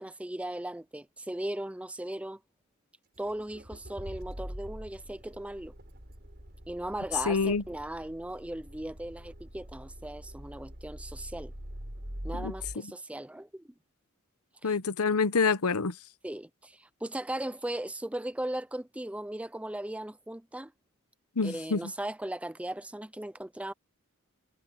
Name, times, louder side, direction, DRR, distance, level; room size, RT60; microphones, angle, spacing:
voice 1, 0.0-2.4 3.2-5.7 6.7-11.5 12.2-13.7 14.6-14.8 16.2-20.7 21.4-23.7, right 1 dB, 5° right, 0.5 m, -37 dB
Accelerating revving vroom, 3.2-12.8, equal, 45° right, 4.7 m, -44 dB
voice 2, 7.3-7.6 12.3-12.5 12.8-12.9 14.6-16.0 21.4-21.9, left 4 dB, 85° left, 0.9 m, -27 dB
head